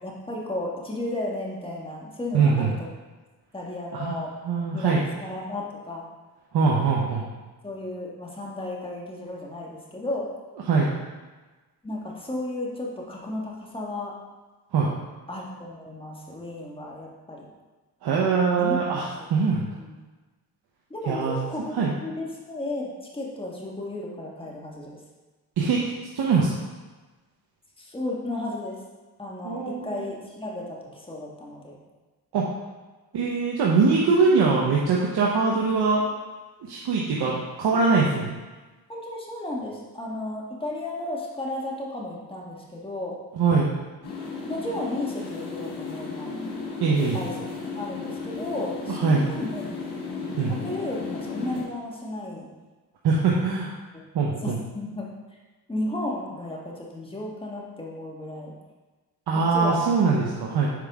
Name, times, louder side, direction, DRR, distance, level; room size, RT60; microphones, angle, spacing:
voice 1, 0.0-2.9 3.5-4.3 4.7-6.1 7.6-10.3 11.8-14.1 15.3-17.5 18.6-19.0 19.7-19.9 20.9-25.0 27.8-28.8 29.2-31.8 37.7-37.8 38.9-43.2 44.4-46.3 47.1-47.5 47.7-49.6 50.1-52.5 54.4-55.1 55.7-58.5 59.3-59.9, left 1 dB, 15° left, -3 dB, 1.6 m, -34 dB
voice 2, 2.3-2.7 3.9-4.2 4.4-5.0 6.5-7.3 10.7-10.9 14.7-14.9 18.0-19.6 21.1-21.4 21.8-21.9 25.6-26.5 29.4-30.0 32.3-32.5 33.1-36.0 36.6-38.3 43.3-43.7 46.8-47.2 48.9-49.3 50.4-50.6 53.0-53.7 54.1-54.6 59.3-60.7, right 4 dB, 75° right, -3 dB, 1.0 m, -22 dB
sound 1, 44.0-51.6, left 4 dB, 90° left, 1.7 m, -34 dB
7.6 x 4.9 x 3.6 m, 1.2 s
cardioid pair, 70°, 39 cm